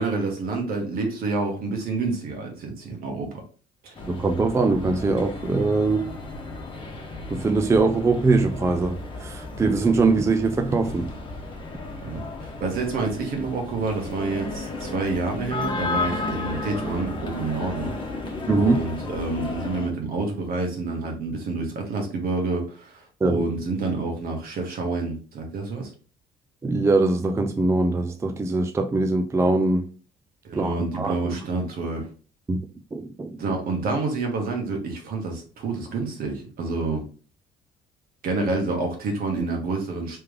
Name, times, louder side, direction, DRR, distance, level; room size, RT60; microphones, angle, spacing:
voice 1, 0.0-3.4 3.8-4.0 12.0-17.9 18.5-25.9 30.4-32.1 33.4-37.0 38.2-40.2, right 3 dB, 60° right, 1.5 m, -28 dB
sound 1, 3.9-19.9, left 2 dB, 30° left, 1.1 m, -33 dB
voice 2, 4.1-6.2 7.3-11.1 18.5-18.8 23.2-23.4 26.6-29.9 30.5-31.3 32.5-32.6 32.9-33.4, right 3 dB, 15° right, 0.4 m, -22 dB
3.4 x 3.2 x 3.4 m
cardioid pair, 110°, 17 cm